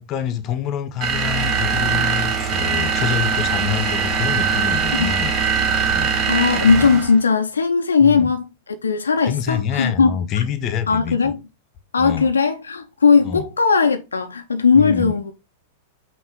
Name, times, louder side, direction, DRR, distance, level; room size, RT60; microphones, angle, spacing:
voice 1, 0.0-5.4 5.9-6.2 8.0-8.3 9.2-11.3 12.0-12.3 13.2-13.4 14.7-15.1, left 8 dB, 35° left, 0.7 m, -26 dB
sound 1, 1.0-7.2, right 6 dB, 30° right, 0.9 m, -21 dB
voice 2, 6.3-10.1 10.9-11.4 11.9-15.3, left 5 dB, 75° left, 0.4 m, -18 dB
5.7 x 2.5 x 3.7 m
figure-of-eight pair, 95°, 0 cm